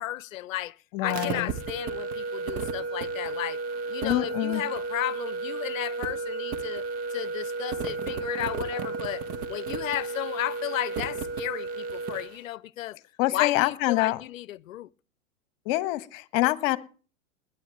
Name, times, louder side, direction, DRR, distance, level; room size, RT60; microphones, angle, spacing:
voice 1, 0.0-3.6 3.9-6.8 7.1-13.0 13.3-14.9, left 14 dB, 70° left, 0.7 m, -34 dB
voice 2, 0.9-1.5 4.0-4.6 13.2-14.2 15.6-16.8, left 18 dB, 45° left, 1.2 m, -25 dB
sound 1, 1.0-12.4, right 4 dB, 35° right, 1.4 m, -33 dB
21.0 x 10.0 x 3.3 m
hypercardioid pair, 105°, 41 cm